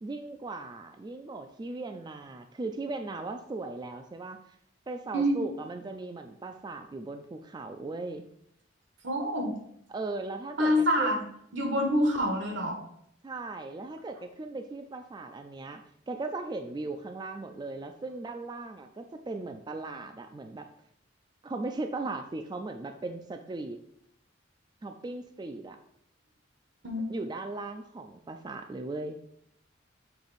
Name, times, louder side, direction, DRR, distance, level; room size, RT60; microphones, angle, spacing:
voice 1, 0.0-4.4 4.9-8.3 9.9-11.2 13.2-20.7 21.4-23.8 24.8-25.8 27.1-29.2, right 3 dB, 20° right, 6 dB, 0.3 m, -38 dB
voice 2, 5.1-5.5 9.0-9.5 10.6-11.2 11.5-12.8 26.8-27.2, equal, 75° right, 3 dB, 1.2 m, -26 dB
6.7 x 3.5 x 4.0 m, 0.72 s
head